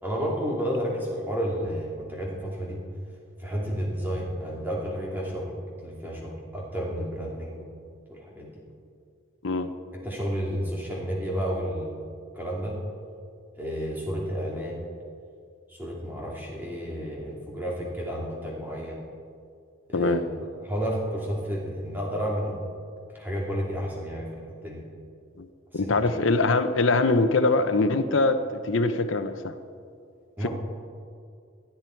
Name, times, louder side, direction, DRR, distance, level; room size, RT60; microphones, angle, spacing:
voice 1, 0.0-2.8 3.4-7.5 8.1-8.5 10.0-12.0 12.3-12.7 13.6-14.8 15.7-19.0 19.9-20.1 20.6-22.6 23.1-24.3 24.6-24.8 25.8-26.0 30.4-30.5, equal, 10° right, -4 dB, 2.9 m, -31 dB
voice 2, 25.7-29.5 30.4-30.5, left 3 dB, 70° left, 10 dB, 0.8 m, -23 dB
19.5 x 13.0 x 4.6 m, 2.3 s
head